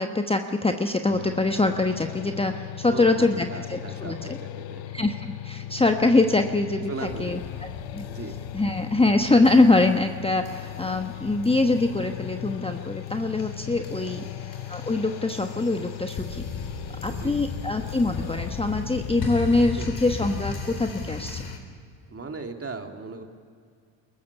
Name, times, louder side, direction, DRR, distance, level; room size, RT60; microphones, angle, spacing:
voice 1, 0.0-4.4 4.9-6.9 7.2-8.1 8.5-14.2 14.7-16.4 17.0-21.4, left 2 dB, 10° left, 6 dB, 1.1 m, -24 dB
sound 1, 1.1-19.5, left 13 dB, 65° left, 0.8 m, -38 dB
voice 2, 2.8-4.9 6.9-7.4 8.1-8.3 14.1-14.3 17.1-17.4 19.8-19.9 22.1-23.2, right 3 dB, 25° right, 4 dB, 2.6 m, -37 dB
sound 2, 7.0-21.6, left 4 dB, 50° left, 3.9 m, -37 dB
21.5 x 15.0 x 9.8 m, 2.3 s
hypercardioid pair, 60°, 50 cm